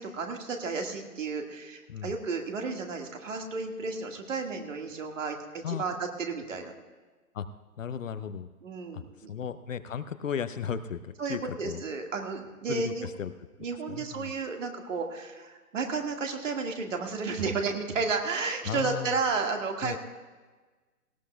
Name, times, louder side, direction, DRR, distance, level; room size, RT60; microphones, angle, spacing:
voice 1, 0.0-6.7 8.6-9.3 11.2-13.1 13.6-20.0, right 4 dB, 55° right, 3 dB, 1.9 m, -32 dB
voice 2, 7.8-8.5 8.9-9.0 9.3-11.8 12.7-13.3 13.9-14.3 18.7-19.2 19.8-20.0, left 7 dB, 55° left, 12 dB, 0.7 m, -35 dB
18.5 x 17.0 x 2.3 m, 1.3 s
figure-of-eight pair, 145°, 46 cm